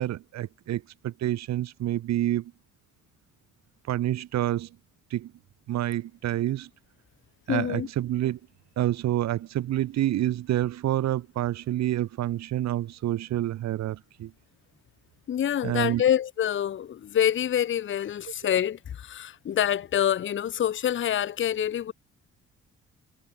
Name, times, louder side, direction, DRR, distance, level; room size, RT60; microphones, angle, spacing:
voice 1, 0.0-2.5 3.9-4.7 5.1-5.3 5.7-6.7 7.5-8.4 8.8-14.3 15.6-16.0, right 13 dB, 60° right, 0.7 m, -28 dB
voice 2, 7.5-7.9 15.3-21.9, left 10 dB, 40° left, 0.7 m, -26 dB
cardioid pair, 90°, 30 cm